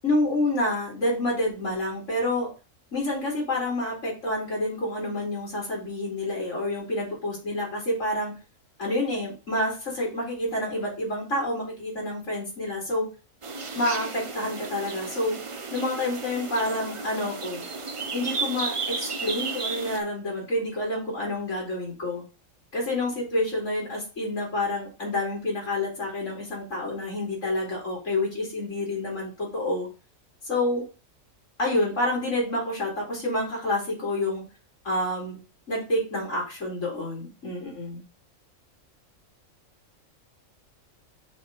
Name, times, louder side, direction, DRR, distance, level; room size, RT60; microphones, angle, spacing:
voice 1, 0.0-2.5 2.9-8.3 8.8-13.1 13.7-15.4 15.7-17.6 18.1-22.2 22.7-29.9 30.4-30.8 31.6-34.4 34.8-35.4 35.7-38.0, left 1 dB, 70° left, -3 dB, 3.5 m, -28 dB
sound 1, 13.4-20.0, right 4 dB, 35° right, 0.6 m, -33 dB
6.2 x 3.5 x 5.3 m, 0.32 s
omnidirectional pair, 1.4 m